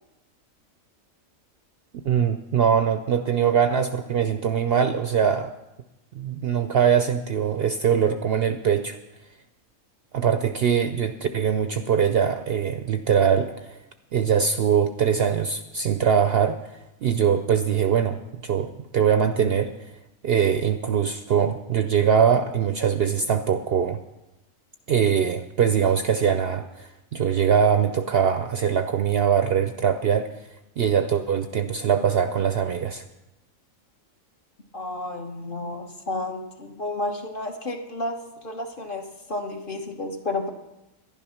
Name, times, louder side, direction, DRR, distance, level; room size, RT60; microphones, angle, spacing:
voice 1, 2.0-5.5 6.1-9.0 10.1-13.8 14.1-19.9 20.2-24.0 24.9-30.3 30.8-33.0, right 7 dB, 60° right, 8 dB, 0.7 m, -22 dB
voice 2, 34.7-40.5, left 2 dB, 40° left, 3 dB, 1.3 m, -31 dB
11.0 x 11.0 x 5.7 m, 0.97 s
omnidirectional pair, 1.4 m